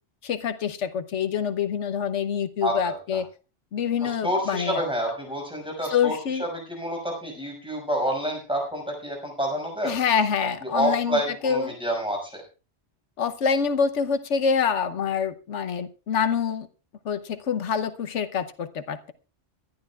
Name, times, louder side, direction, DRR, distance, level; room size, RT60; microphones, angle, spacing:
voice 1, 0.2-3.3 3.7-4.8 5.9-6.5 9.8-11.8 13.2-16.7 17.0-19.1, left 7 dB, 80° left, 11 dB, 1.2 m, -26 dB
voice 2, 2.6-3.2 4.0-9.9 10.6-12.4, equal, 5° right, 0 dB, 5.8 m, -28 dB
25.0 x 11.5 x 2.4 m, 0.33 s
omnidirectional pair, 1.2 m